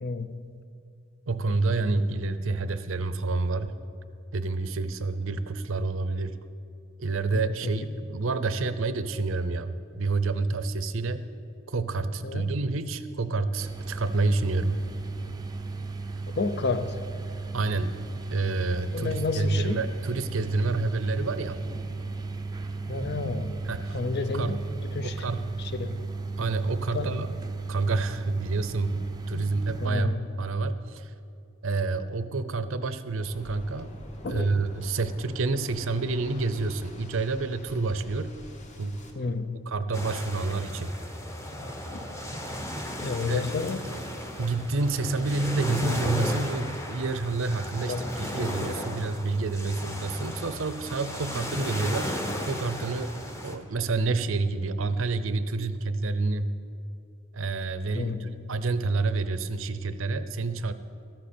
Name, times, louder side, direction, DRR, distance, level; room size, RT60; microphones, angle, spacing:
voice 1, 0.0-0.5 7.3-7.7 12.2-12.5 16.4-17.0 18.9-19.9 22.9-23.6 23.9-24.6 24.9-25.2 25.6-26.1 26.9-27.3 29.3-30.4 34.2-34.5 39.1-39.7 41.6-41.7 43.0-43.9 47.9-48.1 48.8-48.9 57.9-58.5, left 4 dB, 50° left, 11 dB, 0.6 m, -31 dB
voice 2, 1.3-3.7 4.3-6.4 7.0-11.3 11.7-14.8 17.5-18.0 18.3-21.6 23.7-24.6 25.0-25.4 26.4-27.3 27.7-31.1 31.6-33.9 34.3-38.4 38.8-39.3 39.7-40.9 43.3-43.4 44.4-52.2 52.5-53.1 53.4-56.5 57.3-60.7, right 3 dB, 65° right, 12 dB, 0.6 m, -28 dB
Bathroom Tone Drone, 13.6-29.9, right 3 dB, 20° right, 0.5 m, -35 dB
Waves surf, 33.2-39.1, left 1 dB, 35° left, 1.2 m, -47 dB
sound 1, 39.9-53.6, equal, 15° left, 0.9 m, -35 dB
13.5 x 13.5 x 4.4 m, 2.5 s
head